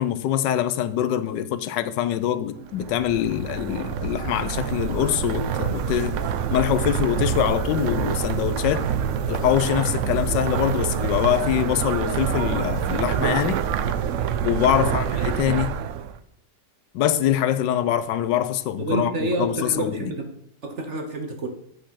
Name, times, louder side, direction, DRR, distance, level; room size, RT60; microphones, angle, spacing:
voice 1, 0.0-6.2 6.5-8.9 9.3-13.6 14.4-15.7 16.9-19.1 19.4-20.1, left 11 dB, 85° left, 1.3 m, -24 dB
sound 1, 2.7-16.2, right 9 dB, 80° right, 0.6 m, -26 dB
sound 2, 2.8-15.4, right 1 dB, 40° left, 2.9 m, -37 dB
voice 2, 18.8-20.3 20.6-21.5, right 1 dB, 45° right, 1.2 m, -28 dB
8.6 x 5.1 x 5.7 m
omnidirectional pair, 1.9 m